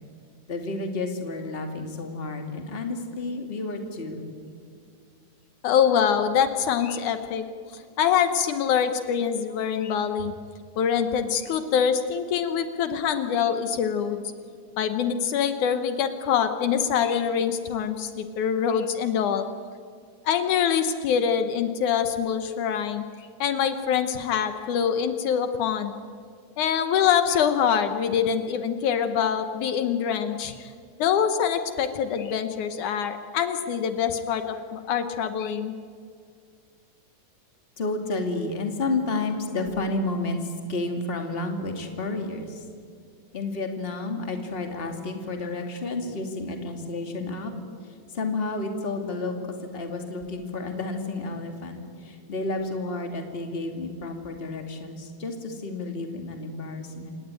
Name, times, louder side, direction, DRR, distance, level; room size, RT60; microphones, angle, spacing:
voice 1, 0.5-4.3 37.8-42.7 43.3-47.5 47.8-57.2, left 2 dB, 20° left, 4 dB, 2.2 m, -31 dB
voice 2, 5.6-7.4 7.7-10.3 10.8-14.2 14.8-19.5 20.3-25.9 26.6-30.7 31.0-35.7, left 8 dB, 75° left, 9 dB, 2.5 m, -24 dB
28.0 x 18.0 x 9.1 m, 2.2 s
omnidirectional pair, 3.7 m